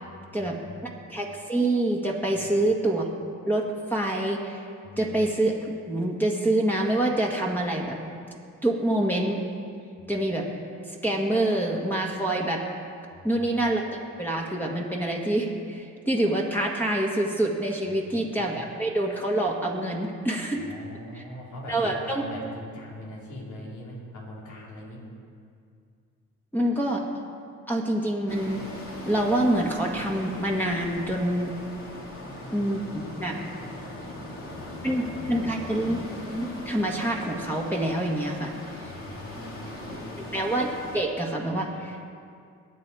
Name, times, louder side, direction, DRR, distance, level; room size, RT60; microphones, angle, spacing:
voice 1, 0.0-1.1 2.3-2.5 4.8-5.2 10.0-10.1 13.1-13.5 17.9-18.6 20.5-25.0 32.1-35.8 38.8-40.3, left 1 dB, 75° left, -3 dB, 3.8 m, -43 dB
voice 2, 0.8-3.0 3.5-4.7 5.0-5.5 5.9-8.0 8.6-9.4 10.1-10.5 10.9-12.6 13.2-13.8 14.2-20.6 21.7-22.2 26.5-27.0 27.7-28.6 29.1-31.5 32.5-33.4 34.8-36.0 36.3-38.5 38.8-38.9 40.3-42.1, right 1 dB, 5° left, -2 dB, 1.8 m, -26 dB
sound 1, 28.3-41.0, left 1 dB, 45° left, 3.2 m, -40 dB
22.0 x 8.9 x 4.8 m, 2.3 s
cardioid pair, 90°, 30 cm